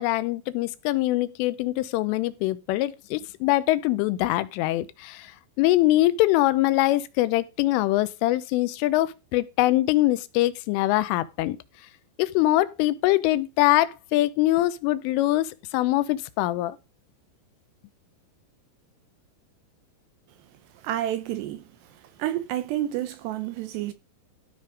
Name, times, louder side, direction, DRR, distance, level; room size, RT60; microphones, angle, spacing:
voice 1, 0.0-5.3 5.6-11.6 12.2-16.8, left 16 dB, 85° left, 3.3 m, -23 dB
voice 2, 20.8-23.9, right 12 dB, 80° right, 2.6 m, -30 dB
14.0 x 5.5 x 5.1 m
omnidirectional pair, 5.6 m